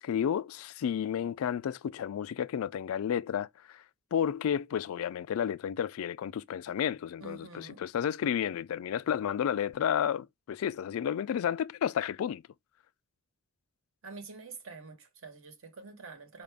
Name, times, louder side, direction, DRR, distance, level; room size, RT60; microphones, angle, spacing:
voice 1, 0.0-3.8 4.1-12.4, left 8 dB, 75° left, 0.3 m, -31 dB
voice 2, 7.2-7.8 14.0-16.4, right 4 dB, 70° right, 1.2 m, -47 dB
4.6 x 2.5 x 3.4 m
head